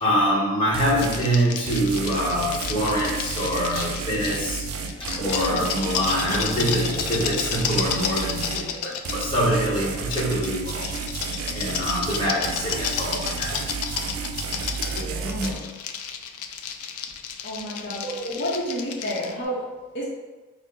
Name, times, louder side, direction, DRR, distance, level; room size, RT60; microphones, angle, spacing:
voice 1, 0.0-4.6 5.0-14.1 14.9-15.7 17.8-18.5, equal, 25° left, -5 dB, 0.9 m, -25 dB
sound 1, 0.7-1.3 1.7-8.7 9.1-15.5, right 5 dB, 85° right, 0.5 m, -32 dB
sound 2, 1.0-4.5 4.9-9.3 10.1-19.3, left 7 dB, 85° left, 0.4 m, -32 dB
voice 2, 17.4-20.0, equal, 50° left, -6 dB, 0.6 m, -30 dB
4.5 x 2.0 x 3.7 m, 1.2 s
head